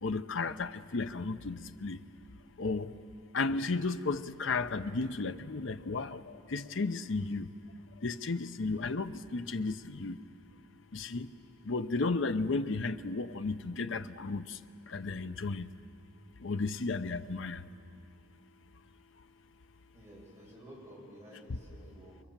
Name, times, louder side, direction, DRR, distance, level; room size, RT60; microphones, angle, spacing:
voice 1, 0.0-2.0 2.6-2.9 3.3-6.2 6.5-7.5 8.0-10.2 10.9-11.3 11.7-14.4 14.9-15.7 16.4-17.6, left 3 dB, 75° left, 11 dB, 0.7 m, -33 dB
voice 2, 19.9-22.2, right 1 dB, 15° right, -5 dB, 7.7 m, -52 dB
27.0 x 22.5 x 7.4 m, 2.5 s
head